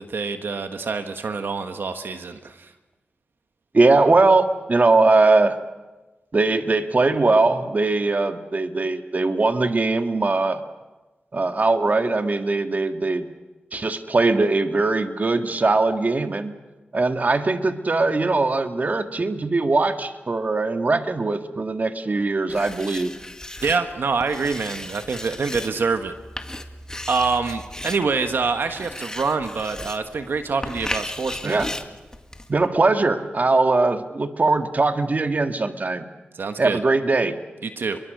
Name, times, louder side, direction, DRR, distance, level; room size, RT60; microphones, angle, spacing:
voice 1, 0.0-2.7 23.6-26.1 27.1-31.6 36.3-36.8 37.6-38.0, right 4 dB, 75° right, 7 dB, 1.5 m, -26 dB
voice 2, 3.7-5.6 6.3-10.6 11.3-13.3 13.7-16.5 16.9-23.1 31.4-31.7 32.5-36.1 36.6-37.4, right 3 dB, 45° right, 7 dB, 1.7 m, -20 dB
Writing, 22.5-32.7, left 1 dB, 20° left, 2.0 m, -36 dB
29.0 x 22.5 x 6.7 m, 1.2 s
cardioid pair, 55°, 4 cm